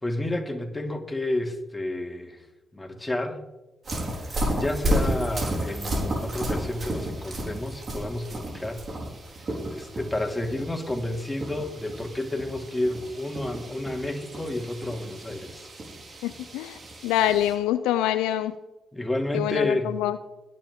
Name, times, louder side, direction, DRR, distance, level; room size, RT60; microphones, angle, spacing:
voice 1, 0.0-2.5 2.7-3.4 4.2-8.8 9.4-15.7 18.9-20.0, left 1 dB, 15° left, 3 dB, 2.6 m, -31 dB
sound 1, 3.8-17.5, right 1 dB, 45° right, 4.2 m, -32 dB
voice 2, 16.2-18.5 19.3-20.2, left 12 dB, 80° left, 12 dB, 0.4 m, -25 dB
21.5 x 7.5 x 3.7 m, 1.0 s
hypercardioid pair, 45°, 0 cm